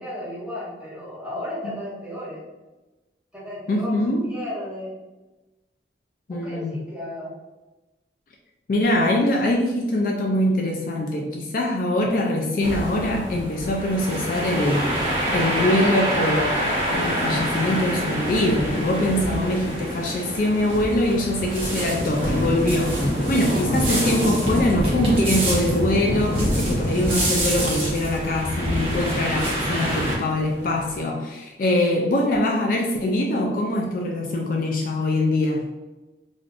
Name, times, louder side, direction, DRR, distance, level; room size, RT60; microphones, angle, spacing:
voice 1, 0.0-2.4 3.3-3.9 4.3-4.9 6.3-7.4, left 1 dB, 5° right, -9 dB, 1.1 m, -34 dB
voice 2, 3.7-4.3 6.3-6.8 8.7-15.0 15.3-35.7, left 1 dB, 50° left, 0 dB, 0.3 m, -23 dB
sound 1, 12.6-30.1, right 1 dB, 30° right, 0.9 m, -27 dB
sound 2, 14.7-31.0, equal, 70° left, 0.8 m, -29 dB
3.4 x 2.5 x 2.4 m, 1.1 s
head